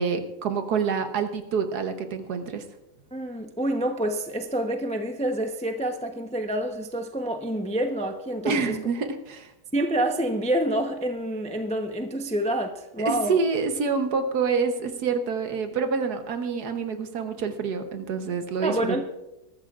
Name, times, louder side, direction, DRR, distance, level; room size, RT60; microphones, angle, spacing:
voice 1, 0.0-2.6 8.4-9.5 13.0-19.0, right 5 dB, 70° right, 7 dB, 1.5 m, -27 dB
voice 2, 3.1-8.8 9.7-13.4 18.6-19.0, right 1 dB, 10° left, 5 dB, 0.5 m, -27 dB
22.0 x 13.0 x 2.5 m, 0.95 s
omnidirectional pair, 1.8 m